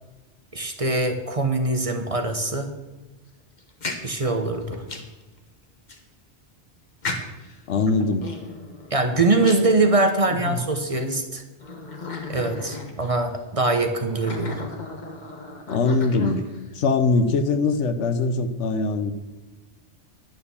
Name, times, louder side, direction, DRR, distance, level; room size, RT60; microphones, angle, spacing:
voice 1, 0.5-2.7 4.0-4.8 8.9-11.4 12.3-14.6, right 2 dB, 30° right, 5 dB, 1.0 m, -23 dB
Yorkie Barks and Growls, 3.6-5.2 5.9-6.0 7.0-7.6 8.2-10.3 10.9-11.0 11.6-13.2 13.9-16.7, left 3 dB, 40° left, 1.3 m, -35 dB
voice 2, 7.7-8.3 10.4-10.6 15.7-16.5 16.7-19.1, left 3 dB, 80° left, 10 dB, 1.2 m, -22 dB
10.5 x 6.7 x 7.0 m, 1.1 s
omnidirectional pair, 1.2 m